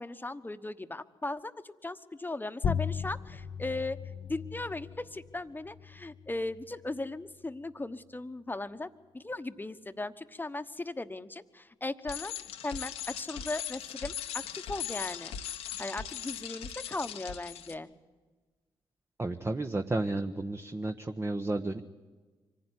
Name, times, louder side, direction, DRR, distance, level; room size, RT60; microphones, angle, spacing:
voice 1, 0.0-4.0 4.3-12.3 12.6-15.3 15.8-17.9, left 2 dB, 20° left, 10 dB, 1.2 m, -37 dB
sound 1, 2.6-7.7, left 7 dB, 60° left, 0.7 m, -38 dB
Bicycle, 12.1-17.7, left 10 dB, 80° left, 1.1 m, -39 dB
voice 2, 19.2-21.8, right 2 dB, 25° right, 6 dB, 1.1 m, -32 dB
24.5 x 15.5 x 9.9 m, 1.3 s
supercardioid pair, 50°, 10 cm